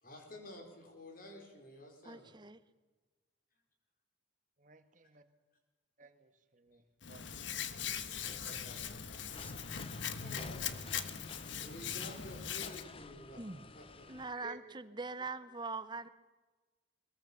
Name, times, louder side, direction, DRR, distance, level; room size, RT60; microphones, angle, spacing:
voice 1, 0.0-2.4 8.0-9.7 10.2-13.4 13.7-14.1, left 1 dB, 45° left, 3 dB, 5.1 m, -52 dB
voice 2, 2.0-2.6 13.4-13.6 14.1-16.1, right 3 dB, 25° right, 14 dB, 0.9 m, -42 dB
voice 3, 4.6-5.2 6.0-7.3 9.8-9.9 14.3-14.8 15.2-15.3, right 3 dB, 40° right, 9 dB, 1.7 m, -56 dB
Hands, 7.0-12.8, left 8 dB, 75° left, 1.4 m, -40 dB
sound 1, 8.4-8.8 9.4-9.7 10.4-10.7 11.4-11.6, left 1 dB, 10° left, 1.1 m, -52 dB
sound 2, 9.3-14.4, left 4 dB, 30° left, 0.8 m, -52 dB
21.5 x 21.5 x 7.1 m, 1.3 s
head